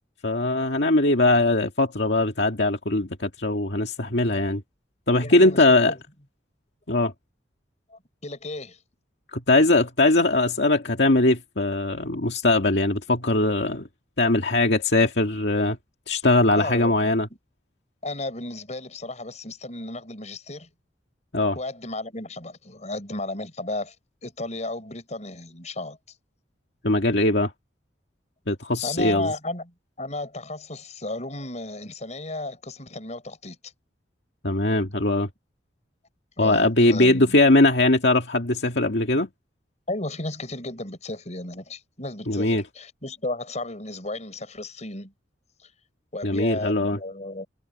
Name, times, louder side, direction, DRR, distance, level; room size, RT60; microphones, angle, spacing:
voice 1, 0.2-4.6 5.1-5.9 6.9-7.1 9.3-13.9 14.2-15.8 16.1-17.3 21.3-21.6 26.8-27.5 28.5-29.3 34.4-35.3 36.4-39.3 42.3-42.6 46.2-47.0, left 2 dB, 65° left, 2.2 m, -21 dB
voice 2, 5.2-6.0 7.9-8.8 16.5-17.2 18.0-20.7 21.5-23.9 24.2-26.0 28.8-33.6 36.4-37.4 39.9-45.1 45.6-45.7 46.1-47.5, left 2 dB, 40° left, 6.4 m, -34 dB
head